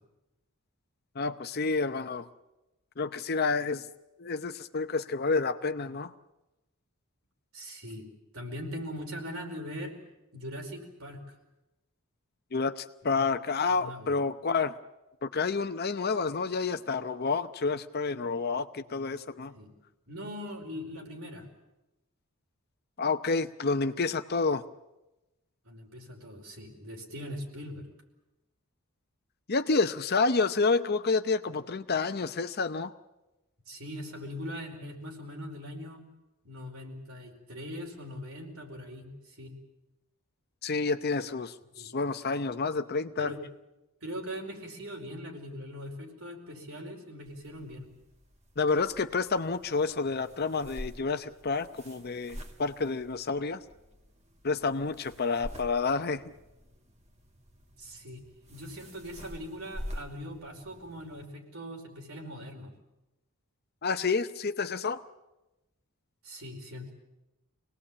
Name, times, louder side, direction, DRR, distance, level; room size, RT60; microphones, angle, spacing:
voice 1, 1.1-2.3 3.0-3.9 4.2-6.1 12.5-14.8 15.2-19.5 23.0-24.6 29.5-32.9 40.6-43.3 48.6-53.6 54.4-56.2 63.8-65.0, left 4 dB, 45° left, 10 dB, 0.8 m, -29 dB
voice 2, 7.5-8.1 8.3-10.0 10.3-11.2 13.2-13.3 13.7-14.1 19.6-19.7 20.1-21.5 25.6-27.9 33.7-36.0 36.4-39.5 41.8-41.9 43.2-43.4 44.0-47.9 57.8-58.2 58.5-62.7 66.2-66.9, equal, 70° right, 1 dB, 4.9 m, -41 dB
sound 1, 47.2-61.3, equal, 30° right, 2.0 m, -47 dB
25.5 x 19.0 x 8.7 m, 1.0 s
head